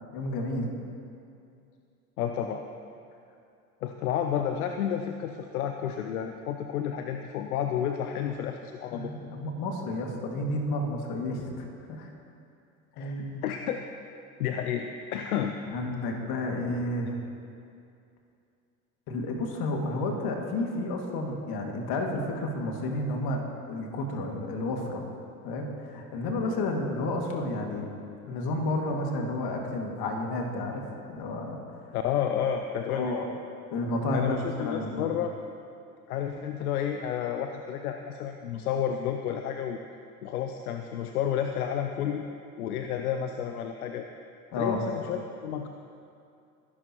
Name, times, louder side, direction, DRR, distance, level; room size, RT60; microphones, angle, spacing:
voice 1, 0.1-0.7 8.9-12.1 13.0-13.4 15.7-17.1 19.1-23.4 23.7-25.0 25.4-27.9 28.3-30.8 31.1-31.6 32.4-32.5 32.9-33.3 33.7-34.4 34.6-35.1 44.5-44.8, left 2 dB, 55° left, 1 dB, 2.3 m, -31 dB
voice 2, 2.2-2.6 3.8-9.1 13.0-13.8 14.4-15.5 31.9-33.2 34.1-35.3 36.1-39.8 40.2-42.3 42.6-44.1 44.6-45.7, left 9 dB, 80° left, 6 dB, 0.7 m, -31 dB
23.5 x 11.0 x 3.0 m, 2.5 s
hypercardioid pair, 65°, 43 cm